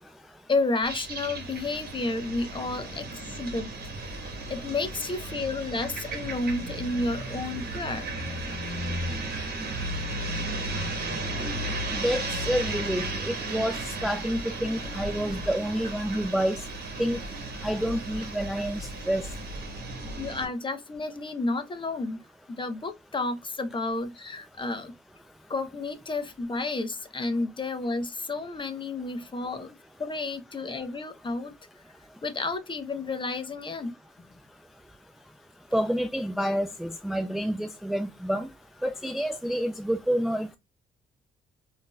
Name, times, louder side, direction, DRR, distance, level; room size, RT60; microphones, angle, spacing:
voice 1, 0.5-3.7 4.0-8.1 20.2-22.2 22.5-25.0 25.5-31.5 32.2-33.9, left 3 dB, 25° left, 0.7 m, -31 dB
sound 1, 0.8-20.5, right 2 dB, 50° right, 1.2 m, -34 dB
voice 2, 11.9-16.6 17.0-17.2 17.6-19.2 35.7-38.5 38.8-40.6, equal, ahead, 0.4 m, -28 dB
3.6 x 2.7 x 2.2 m
cardioid pair, 90°, 20 cm